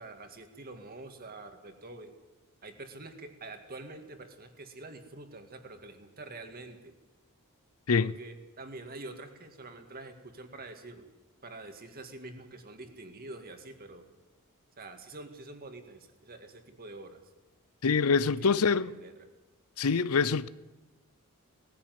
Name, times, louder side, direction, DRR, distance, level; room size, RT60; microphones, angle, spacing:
voice 1, 0.0-2.2 2.6-6.9 8.0-11.1 11.4-14.1 14.8-17.2 18.4-18.6 18.8-19.1, right 2 dB, 45° right, 2.2 m, -46 dB
voice 2, 17.8-18.9 19.8-20.5, left 5 dB, 80° left, 0.6 m, -25 dB
19.0 x 14.5 x 9.5 m
head